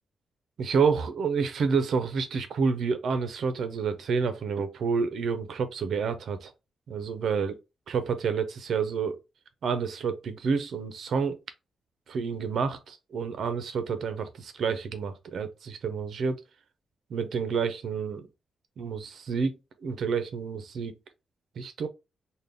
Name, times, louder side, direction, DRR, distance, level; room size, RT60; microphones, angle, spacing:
voice 1, 0.6-6.5 6.9-7.5 7.9-9.2 9.6-11.4 12.1-16.4 17.1-18.3 18.8-19.6 19.8-21.0 21.6-21.9, right 5 dB, 60° right, 0.5 m, -29 dB
3.7 x 2.1 x 3.3 m
wide cardioid pair, 170°, 0 cm